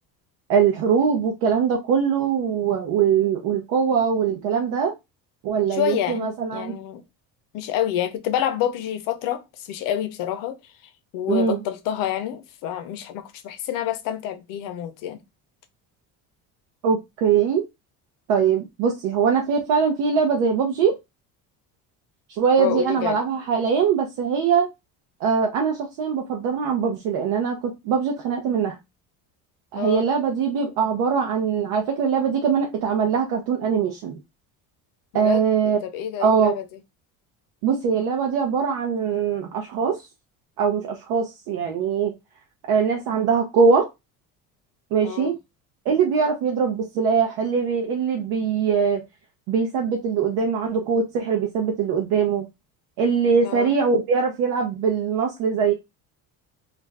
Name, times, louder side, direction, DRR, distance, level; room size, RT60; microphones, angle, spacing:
voice 1, 0.5-4.9 5.4-6.8 11.3-11.6 16.8-17.6 18.3-21.0 22.3-24.7 25.2-28.8 29.7-34.2 35.1-35.8 36.2-36.6 37.6-40.0 40.6-42.1 42.7-43.9 44.9-45.3 45.9-49.0 49.5-52.5 53.0-55.7, right 6 dB, 75° right, 0.7 m, -22 dB
voice 2, 5.7-7.0 7.5-15.2 22.6-23.2 29.7-30.1 35.1-36.6 45.0-45.3 53.4-53.7, left 11 dB, 60° left, 0.6 m, -28 dB
2.5 x 2.3 x 3.1 m
cardioid pair, 175°, 38 cm